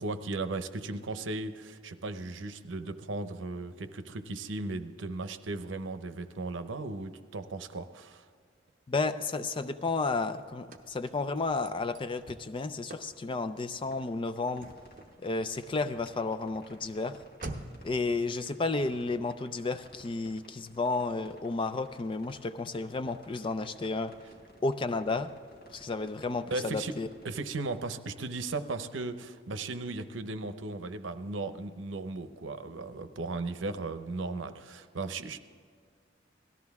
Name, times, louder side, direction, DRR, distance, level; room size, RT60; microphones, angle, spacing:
voice 1, 0.0-8.3 26.5-27.0 27.2-35.4, right 3 dB, 85° right, 10 dB, 0.7 m, -36 dB
voice 2, 8.9-14.7 15.2-17.2 17.8-24.1 24.6-25.3 25.7-27.1, left 3 dB, 25° left, 11 dB, 0.4 m, -32 dB
Car / Slam, 9.3-18.0, right 2 dB, 45° right, 0.9 m, -49 dB
sound 1, 13.7-27.3, equal, 55° left, 3.3 m, -56 dB
18.0 x 13.5 x 3.5 m, 2.1 s
head